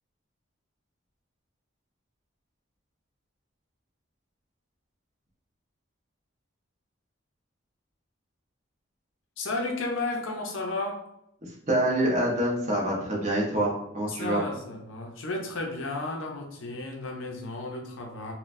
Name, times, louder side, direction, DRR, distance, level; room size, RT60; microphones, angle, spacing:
voice 1, 9.4-11.0 14.1-18.3, left 2 dB, 70° left, 1 dB, 0.6 m, -33 dB
voice 2, 11.4-14.4, right 1 dB, 35° right, -3 dB, 0.8 m, -26 dB
3.8 x 2.2 x 2.6 m, 0.78 s
head